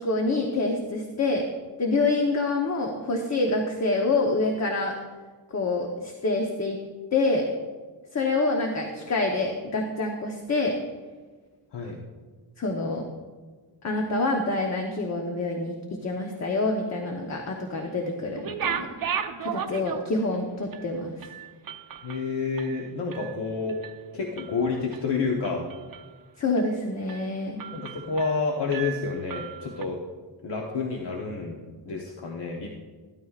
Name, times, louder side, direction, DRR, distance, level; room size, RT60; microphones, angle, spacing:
voice 1, 0.0-1.4 1.8-4.9 5.5-6.8 7.1-7.4 8.1-10.7 12.6-13.0 13.8-15.8 16.0-18.9 19.4-21.1 26.4-27.6, left 2 dB, 35° left, 2 dB, 0.9 m, -26 dB
sound 1, 18.3-20.3 20.7-20.8 21.2-23.4 23.7-24.0 24.4-25.0 25.4-26.2 26.6-26.7 27.1-27.3 27.6-28.4 28.7-29.8, right 7 dB, 50° right, 0.7 m, -35 dB
voice 2, 22.0-23.8 24.1-25.6 27.7-30.0 30.4-32.7, left 4 dB, 65° left, -1 dB, 1.2 m, -29 dB
13.5 x 12.5 x 2.4 m, 1.4 s
wide cardioid pair, 155°, 44 cm